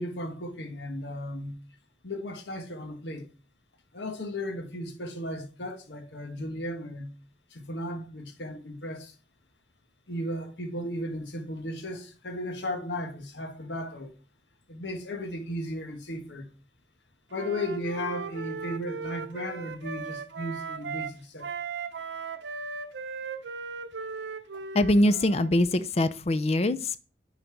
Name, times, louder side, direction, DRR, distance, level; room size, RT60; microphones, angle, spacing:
voice 1, 0.0-1.6 2.0-3.3 3.9-7.1 7.5-9.1 10.1-14.1 14.7-16.5 17.3-21.5, left 1 dB, 85° left, 1.3 m, -35 dB
Wind instrument woodwind instrument, 17.3-21.2 21.4-25.5, right 5 dB, 80° right, 0.7 m, -37 dB
voice 2, 24.7-27.0, left 1 dB, 35° left, 0.5 m, -23 dB
9.6 x 4.1 x 4.5 m
head